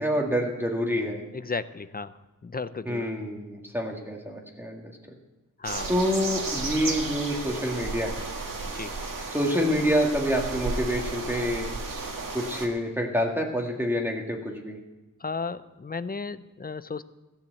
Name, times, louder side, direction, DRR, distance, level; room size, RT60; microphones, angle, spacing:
voice 1, 0.0-1.2 2.9-5.0 5.9-8.3 9.3-11.7 12.3-14.8, equal, 5° right, 0 dB, 1.8 m, -27 dB
voice 2, 1.3-2.1 2.4-3.1 5.6-5.9 8.7-8.9 15.2-17.0, left 4 dB, 30° left, 14 dB, 0.5 m, -34 dB
sound 1, 5.6-12.7, right 3 dB, 75° right, 1.7 m, -33 dB
14.5 x 6.9 x 7.9 m, 1.1 s
wide cardioid pair, 95°, 33 cm